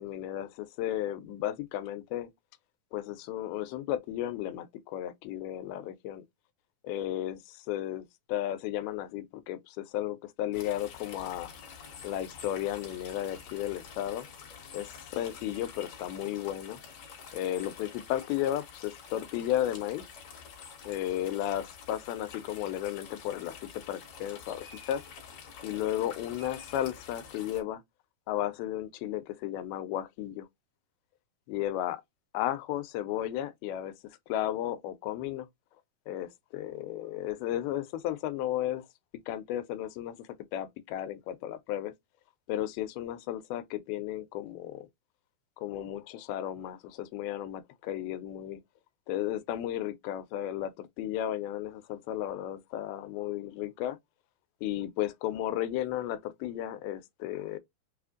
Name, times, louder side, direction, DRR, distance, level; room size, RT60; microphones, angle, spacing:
voice 1, 0.0-2.3 2.9-6.2 6.8-11.5 12.0-14.3 14.7-16.8 17.3-20.1 20.9-25.0 25.6-27.8 28.3-30.5 31.5-32.0 32.3-35.5 36.1-38.9 39.3-41.9 42.5-44.9 45.6-48.6 49.1-54.0 54.6-57.6, left 12 dB, 85° left, 2.5 m, -34 dB
sound 1, 10.5-27.6, left 6 dB, 55° left, 2.3 m, -48 dB
6.3 x 2.5 x 2.4 m
omnidirectional pair, 4.3 m